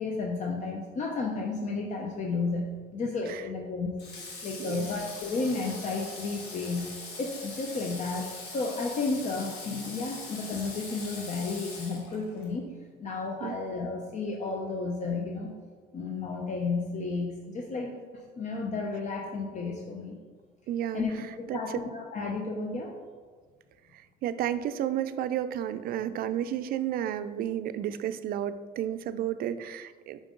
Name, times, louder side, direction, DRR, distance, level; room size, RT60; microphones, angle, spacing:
voice 1, 0.0-4.0 4.4-6.9 7.2-12.7 13.0-15.5 15.9-20.2 20.9-22.9, left 3 dB, 45° left, 0 dB, 0.7 m, -32 dB
Water / Water tap faucet, 4.0-12.5, left 3 dB, 85° left, 1.3 m, -42 dB
voice 2, 20.7-21.0 21.5-21.6 24.2-30.2, right 10 dB, 60° right, 12 dB, 0.4 m, -32 dB
5.2 x 5.1 x 3.7 m, 1.5 s
cardioid pair, 110°, 17 cm